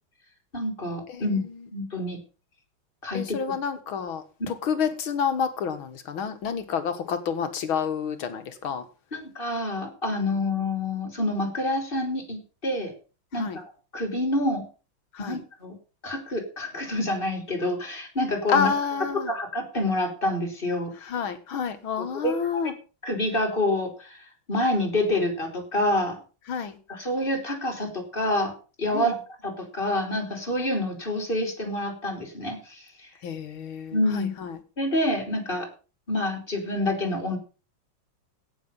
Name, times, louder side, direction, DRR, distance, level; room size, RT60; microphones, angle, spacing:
voice 1, 0.5-1.4 1.7-2.2 3.0-3.2 9.1-12.9 13.3-14.6 15.2-15.7 16.0-18.7 19.3-20.9 22.2-22.7 23.0-26.2 26.9-33.1 33.9-34.3 34.8-35.7 36.1-37.4, left 1 dB, 25° left, 4 dB, 3.4 m, -27 dB
voice 2, 1.1-1.7 3.1-8.9 13.3-13.6 15.1-15.4 18.5-19.3 21.0-22.7 26.5-26.8 28.9-29.2 33.2-34.6, left 6 dB, 80° left, 9 dB, 2.4 m, -29 dB
17.0 x 7.1 x 5.5 m, 0.35 s
omnidirectional pair, 2.2 m